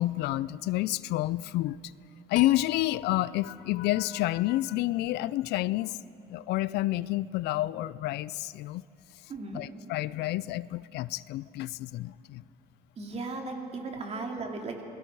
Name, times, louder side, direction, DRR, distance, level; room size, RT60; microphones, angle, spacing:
voice 1, 0.0-1.9 2.3-6.0 6.3-8.8 9.5-12.4, left 16 dB, 80° left, 19 dB, 0.4 m, -29 dB
sound 1, 2.4-5.5, left 10 dB, 50° left, 1.1 m, -45 dB
voice 2, 9.3-9.6 13.0-14.8, right 3 dB, 40° right, 2 dB, 2.9 m, -36 dB
27.5 x 21.0 x 4.7 m, 2.7 s
cardioid pair, 110°, 17 cm